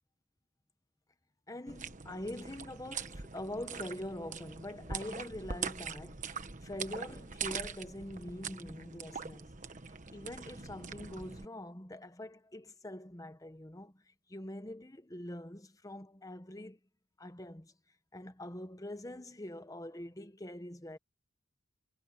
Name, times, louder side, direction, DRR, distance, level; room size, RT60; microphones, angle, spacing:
voice 1, 1.5-9.5 9.8-16.8 17.2-17.7 18.1-21.0, left 1 dB, 15° left, 1.1 m, -44 dB
sound 1, 1.7-11.5, right 6 dB, 40° right, 1.3 m, -43 dB
head